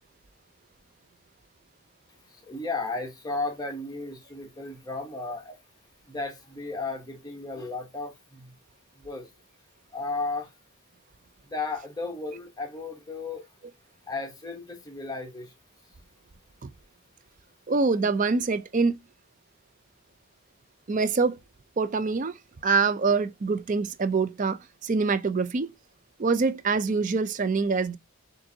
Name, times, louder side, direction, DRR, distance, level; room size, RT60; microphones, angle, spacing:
voice 1, 2.3-5.6 6.1-8.5 9.0-9.3 9.9-10.5 11.4-13.4 14.1-15.5, left 3 dB, 15° left, 1.0 m, -34 dB
voice 2, 17.7-19.0 20.9-21.4 21.8-22.4 22.6-25.7 26.2-28.0, right 4 dB, 35° right, 0.4 m, -25 dB
6.4 x 2.6 x 2.7 m
head